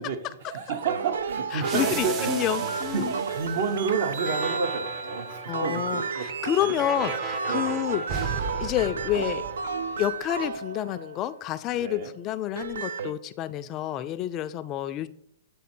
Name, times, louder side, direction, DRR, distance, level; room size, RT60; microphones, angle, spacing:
voice 1, 0.0-6.3 6.6-7.1 7.5-7.9 11.7-12.2, right 5 dB, 60° right, 8 dB, 0.9 m, -31 dB
sound 1, 0.8-11.3 12.4-13.1, right 5 dB, 80° right, 0.4 m, -32 dB
voice 2, 1.5-3.1 5.5-9.5 10.0-15.1, left 12 dB, 30° left, 12 dB, 0.3 m, -29 dB
sound 2, 1.6-10.1, right 5 dB, 30° right, 0.6 m, -36 dB
8.4 x 3.2 x 4.4 m, 0.70 s
hypercardioid pair, 130°, 0 cm